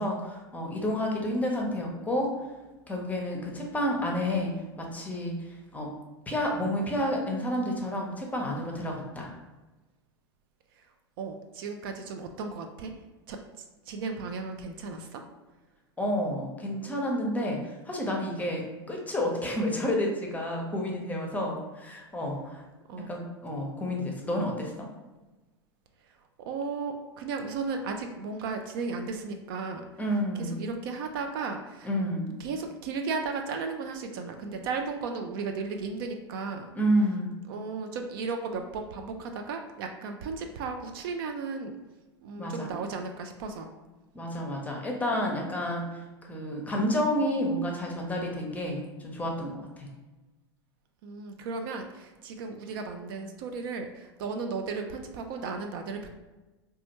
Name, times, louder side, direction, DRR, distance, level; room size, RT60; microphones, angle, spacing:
voice 1, 0.0-2.3 2.9-5.9 6.3-9.3 16.0-22.6 23.1-24.9 30.0-30.7 31.8-32.3 36.7-37.4 42.4-42.7 44.1-49.9, equal, 10° left, 0 dB, 0.7 m, -30 dB
voice 2, 10.7-12.9 13.3-15.2 22.9-23.1 26.0-30.0 30.3-31.9 32.4-36.7 37.5-41.8 42.2-43.7 51.0-56.1, right 4 dB, 55° right, 5 dB, 0.4 m, -35 dB
4.0 x 2.3 x 2.9 m, 1.1 s
figure-of-eight pair, 90°, 14 cm